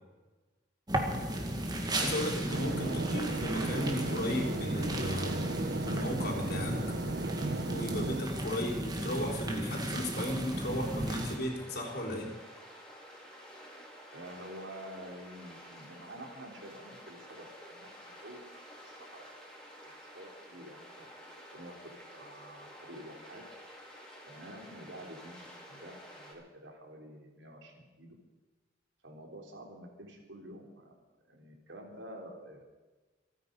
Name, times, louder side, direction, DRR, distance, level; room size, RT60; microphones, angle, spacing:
sound 1, 0.9-11.4, right 1 dB, 20° right, 1.9 m, -35 dB
voice 1, 1.9-5.3 5.8-6.8 7.7-12.3, left 1 dB, 55° left, 1 dB, 3.8 m, -35 dB
sound 2, 2.5-8.2, right 3 dB, 55° right, 0.8 m, -36 dB
voice 2, 2.9-3.2 8.5-9.0 14.1-19.4 20.0-21.0 21.5-23.4 24.3-28.1 29.0-30.9 31.3-32.6, right 1 dB, 75° right, 1 dB, 3.7 m, -49 dB
sound 3, 10.5-26.3, equal, 5° left, 4.0 m, -51 dB
27.0 x 9.5 x 5.4 m, 1.3 s
head